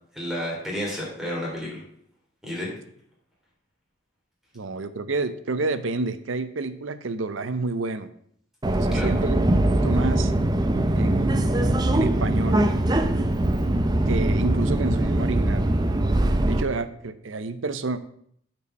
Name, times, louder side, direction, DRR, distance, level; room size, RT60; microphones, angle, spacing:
voice 1, 0.1-1.8 2.4-2.7 8.9-9.1, equal, ahead, -5 dB, 2.8 m, -31 dB
voice 2, 4.5-8.1 8.7-10.3 10.9-12.7 14.1-15.7 16.5-18.0, right 3 dB, 80° right, 12 dB, 0.7 m, -29 dB
Subway metro underground, 8.6-16.6, right 1 dB, 20° right, 0.5 m, -22 dB
8.4 x 4.6 x 6.4 m, 0.66 s
head